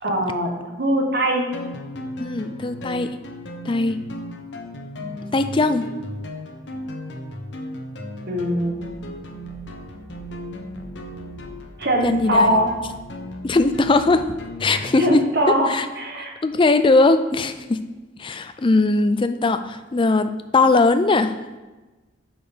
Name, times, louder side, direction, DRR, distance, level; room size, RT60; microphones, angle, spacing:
voice 1, 0.0-1.5 8.3-8.8 11.8-12.7 14.7-16.3, equal, 55° right, 2 dB, 1.3 m, -22 dB
sound 1, 1.5-15.2, left 1 dB, 65° left, 1.0 m, -36 dB
voice 2, 2.2-3.1 3.7-4.0 5.3-5.9 12.0-12.6 13.4-14.2 14.6-15.2 15.7-15.9 16.4-17.8 18.2-21.3, left 3 dB, 25° left, 10 dB, 0.4 m, -19 dB
6.8 x 6.1 x 5.1 m, 1.2 s
head